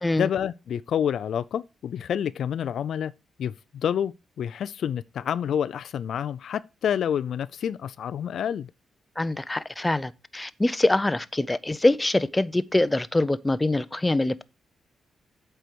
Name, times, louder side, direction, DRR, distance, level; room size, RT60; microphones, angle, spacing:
voice 1, 0.2-3.1 3.4-8.7, left 9 dB, 70° left, 0.3 m, -28 dB
voice 2, 9.2-14.4, left 2 dB, 15° left, 0.5 m, -24 dB
8.2 x 4.5 x 6.1 m
cardioid pair, 100°, 0 cm